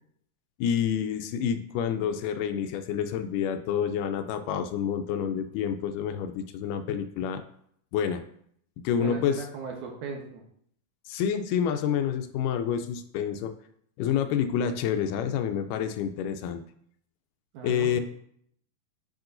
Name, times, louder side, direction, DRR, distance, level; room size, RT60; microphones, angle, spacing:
voice 1, 0.6-7.4 7.9-8.2 8.8-9.5 11.1-13.5 14.0-16.6 17.6-18.0, left 8 dB, 85° left, 8 dB, 2.1 m, -28 dB
voice 2, 9.0-10.4 17.5-18.0, right 5 dB, 75° right, 0 dB, 2.3 m, -37 dB
8.8 x 5.5 x 2.6 m, 0.67 s
omnidirectional pair, 3.8 m